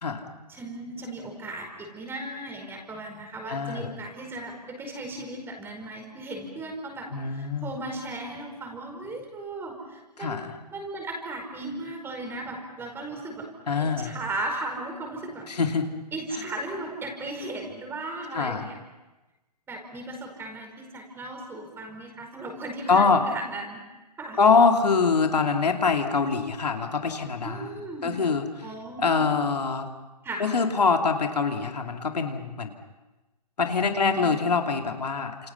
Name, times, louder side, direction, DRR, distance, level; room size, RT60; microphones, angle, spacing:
voice 1, 0.5-10.4 10.7-13.5 13.8-15.5 16.1-18.8 19.7-23.8 24.2-24.4 27.4-28.2 28.6-29.3 30.2-30.5 33.8-34.4, right 2 dB, 10° right, 2 dB, 5.0 m, -36 dB
voice 2, 3.5-3.9 7.1-7.7 10.2-10.6 13.7-14.1 15.5-15.9 18.3-18.7 22.9-23.2 24.4-27.6 28.0-28.4 29.0-29.9 30.4-32.7 33.6-35.5, left 4 dB, 70° left, 4 dB, 2.8 m, -24 dB
29.5 x 28.5 x 5.7 m, 1.1 s
figure-of-eight pair, 135°, 21 cm